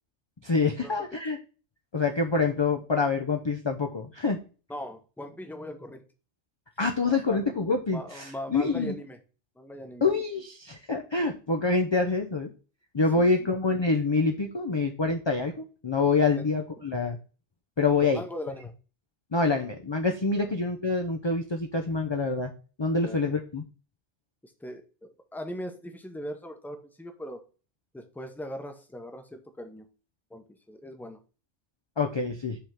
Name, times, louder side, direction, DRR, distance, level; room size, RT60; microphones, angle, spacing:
voice 1, 0.4-1.4 1.9-4.4 6.8-8.9 10.0-12.5 12.9-17.2 17.8-18.2 19.3-22.5 22.8-23.6 32.0-32.6, left 3 dB, 30° left, 3 dB, 0.5 m, -26 dB
voice 2, 4.7-6.0 7.0-7.4 7.9-9.2 9.6-10.1 13.2-13.5 16.3-16.4 18.0-18.7 20.4-20.5 23.0-23.2 24.4-27.4 27.9-29.8 30.3-31.2, equal, ahead, 5 dB, 0.8 m, -40 dB
5.7 x 3.6 x 5.7 m, 0.35 s
omnidirectional pair, 1.3 m